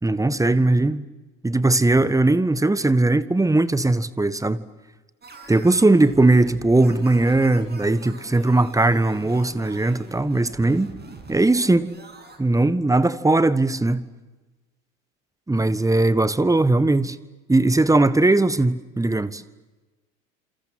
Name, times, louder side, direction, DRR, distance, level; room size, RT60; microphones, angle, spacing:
voice 1, 0.0-1.1 1.4-4.6 5.5-10.9 11.3-11.9 12.4-14.0 15.5-17.2 17.5-19.4, right 2 dB, 10° right, 1.5 m, -19 dB
sound 1, 5.2-12.4, right 3 dB, 25° right, 6.7 m, -43 dB
27.5 x 27.5 x 7.8 m
figure-of-eight pair, 70°, 40 cm